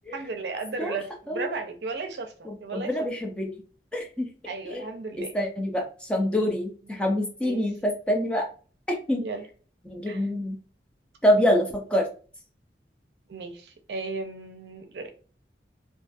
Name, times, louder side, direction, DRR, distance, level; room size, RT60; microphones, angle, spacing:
voice 1, 0.1-3.1 4.5-5.3 7.4-7.6 9.2-9.4 10.1-10.2 13.3-15.1, right 3 dB, 75° right, 0.5 m, -35 dB
voice 2, 2.5-3.6 3.9-4.3 4.7-4.9 5.2-8.5 8.9-9.2 9.9-10.6 11.2-12.1, left 1 dB, 5° left, 0.4 m, -26 dB
2.4 x 2.3 x 2.5 m
head